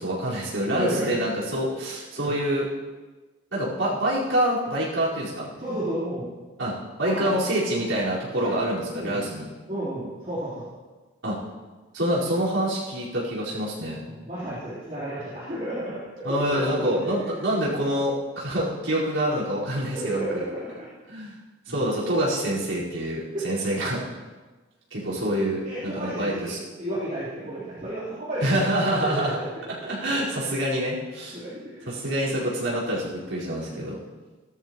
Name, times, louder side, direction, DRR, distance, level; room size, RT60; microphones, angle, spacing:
voice 1, 0.0-2.7 3.5-5.5 6.6-9.5 11.2-11.4 11.9-14.0 16.2-20.4 21.1-21.4 21.7-24.0 24.9-26.6 28.4-29.4 29.9-31.4 31.9-34.0, right 1 dB, 80° right, -7 dB, 4.7 m, -26 dB
voice 2, 0.7-1.2 2.2-2.3 5.6-6.3 7.0-7.4 8.4-8.6 8.8-9.3 9.7-10.7 14.0-17.1 18.5-18.6 19.9-20.9 21.7-21.9 23.3-23.5 25.6-28.4 29.0-29.5 31.3-31.9 33.6-33.8, right 1 dB, 40° right, -11 dB, 3.8 m, -32 dB
16.5 x 13.0 x 3.1 m, 1.3 s
head